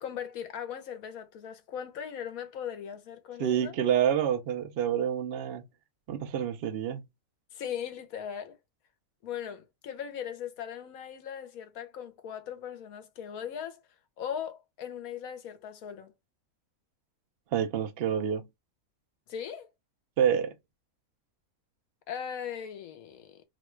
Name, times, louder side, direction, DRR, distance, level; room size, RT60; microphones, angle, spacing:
voice 1, 0.0-3.8 7.5-8.6 9.2-13.8 14.2-16.1 19.3-19.7 22.1-23.4, left 8 dB, 75° left, 1.2 m, -39 dB
voice 2, 3.4-5.6 6.1-7.0 17.5-18.5 20.2-20.5, right 9 dB, 65° right, 0.6 m, -28 dB
3.0 x 2.2 x 3.0 m
omnidirectional pair, 1.5 m